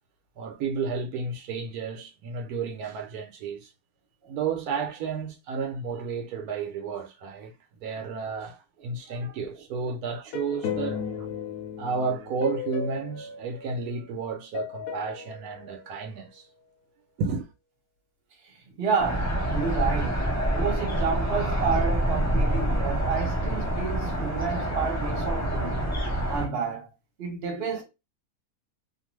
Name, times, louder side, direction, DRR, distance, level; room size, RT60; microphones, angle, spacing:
voice 1, 0.4-3.7 4.3-11.4 11.8-16.5 17.2-17.5, right 5 dB, 80° right, 1.1 m, -32 dB
sound 1, 10.3-14.2 14.5-16.6, left 7 dB, 75° left, 1.0 m, -36 dB
voice 2, 18.8-26.9 27.2-27.8, right 5 dB, 50° right, 1.0 m, -30 dB
sound 2, 19.0-26.5, right 1 dB, 20° left, 0.5 m, -27 dB
2.5 x 2.4 x 3.0 m
omnidirectional pair, 1.6 m